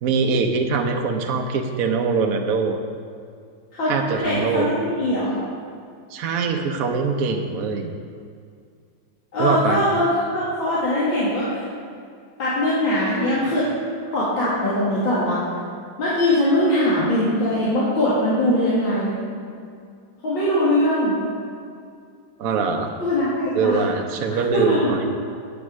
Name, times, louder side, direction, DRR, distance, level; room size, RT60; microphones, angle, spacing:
voice 1, 0.0-2.8 3.9-4.7 6.1-7.9 9.4-9.8 22.4-22.9 23.5-25.1, right 4 dB, 60° right, 3 dB, 1.0 m, -23 dB
voice 2, 4.2-5.4 9.3-11.6 12.4-13.6 14.1-15.4 16.0-19.2 20.2-21.2 23.0-23.8 24.3-24.8, left 1 dB, 90° left, -10 dB, 2.8 m, -21 dB
9.0 x 7.2 x 6.2 m, 2.3 s
omnidirectional pair, 2.1 m